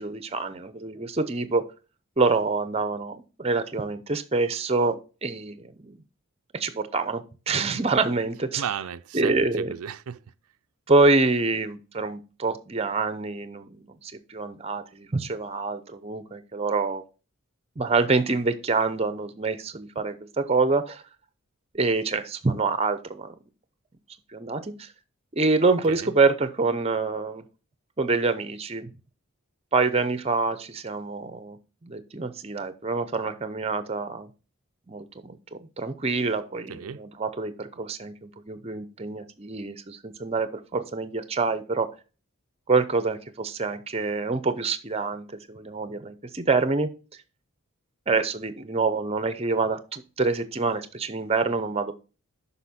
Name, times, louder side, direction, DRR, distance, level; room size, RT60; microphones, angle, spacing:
voice 1, 0.0-1.6 2.2-6.0 6.5-8.7 9.1-9.7 10.9-17.0 17.8-21.0 21.7-23.3 24.3-24.9 25.3-27.4 28.0-28.9 29.7-31.6 31.8-34.3 34.9-41.9 42.7-46.9 48.1-51.9, right 3 dB, 25° right, 0.6 m, -26 dB
voice 2, 8.6-10.2 25.9-26.1 36.7-37.0, right 8 dB, 80° right, 0.4 m, -34 dB
8.1 x 5.6 x 4.3 m
head